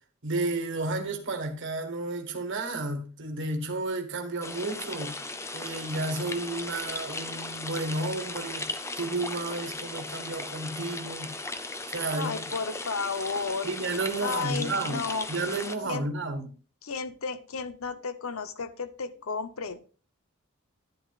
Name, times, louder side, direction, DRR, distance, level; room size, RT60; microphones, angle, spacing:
voice 1, 0.2-5.1 5.5-8.7 9.0-11.3 11.9-12.3 13.6-16.5, right 2 dB, 60° right, 1.5 m, -32 dB
sound 1, 4.4-15.8, left 2 dB, 15° left, 0.6 m, -37 dB
voice 2, 12.1-13.7 14.2-15.3 15.8-16.1 16.8-19.8, left 4 dB, 75° left, 0.8 m, -33 dB
10.5 x 10.0 x 2.4 m
head